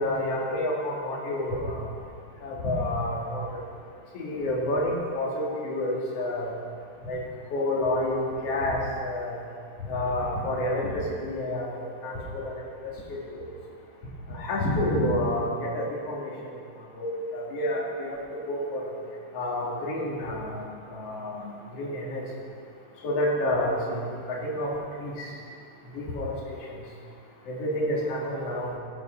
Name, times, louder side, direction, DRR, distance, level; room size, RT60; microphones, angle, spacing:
voice 1, 0.0-1.8 2.4-3.6 4.1-6.5 7.0-7.2 7.5-9.4 9.8-13.4 14.3-16.5 17.0-18.2 18.5-18.9 19.3-20.6 20.9-22.2 23.0-24.7 25.0-25.3 25.9-26.6 27.5-28.8, left 1 dB, 70° left, -4 dB, 1.5 m, -29 dB
16.5 x 8.7 x 4.3 m, 2.3 s
omnidirectional pair, 5.9 m